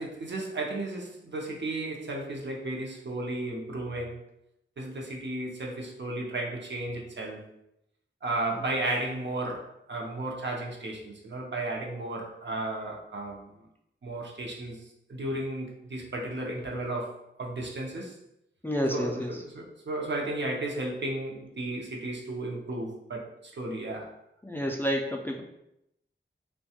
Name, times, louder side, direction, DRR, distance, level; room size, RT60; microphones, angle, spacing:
voice 1, 0.0-4.2 4.8-7.4 8.2-13.5 14.0-14.8 15.1-17.1 17.4-18.2 18.9-23.3 23.5-24.1, right 2 dB, 60° right, -2 dB, 0.6 m, -34 dB
voice 2, 18.6-19.4 24.4-25.4, equal, 10° left, 0 dB, 0.3 m, -29 dB
2.7 x 2.2 x 2.8 m, 0.82 s
wide cardioid pair, 70°, 20 cm